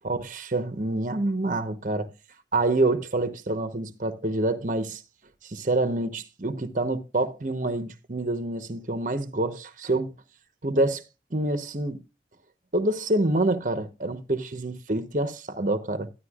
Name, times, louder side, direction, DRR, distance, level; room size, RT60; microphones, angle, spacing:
voice 1, 0.0-2.1 2.5-5.0 5.4-10.1 10.6-11.0 11.3-12.0 12.7-16.1, right 2 dB, 45° right, 1.0 m, -27 dB
11.5 x 10.5 x 2.4 m
head